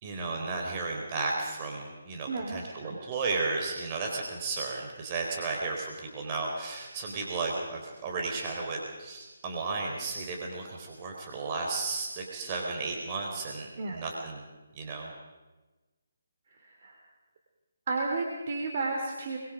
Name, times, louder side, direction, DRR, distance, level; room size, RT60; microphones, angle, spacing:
voice 1, 0.0-14.4 14.7-15.1, right 3 dB, 30° right, 1 dB, 4.1 m, -34 dB
voice 2, 2.3-3.0 13.8-14.0 16.8-17.0 17.9-19.4, right 3 dB, 45° right, 1 dB, 3.0 m, -32 dB
24.0 x 22.5 x 5.1 m, 1.2 s
figure-of-eight pair, 145°, 0 cm